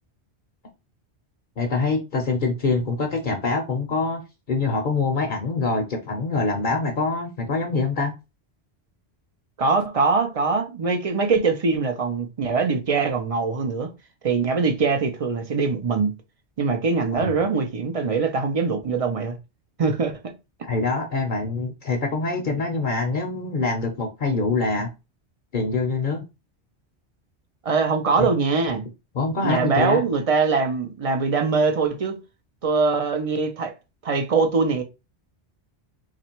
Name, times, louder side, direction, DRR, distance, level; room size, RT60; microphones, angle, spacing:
voice 1, 1.6-4.2 4.5-8.1 17.1-17.3 20.6-24.9 25.5-26.2 28.2-28.3 29.1-30.0, left 3 dB, 50° left, 0.7 m, -24 dB
voice 2, 9.6-13.9 14.2-16.1 16.6-19.4 19.8-20.3 27.6-28.8 29.4-32.2 32.6-33.7 34.0-34.8, right 4 dB, 40° right, 0.6 m, -22 dB
3.1 x 2.5 x 4.3 m
omnidirectional pair, 1.1 m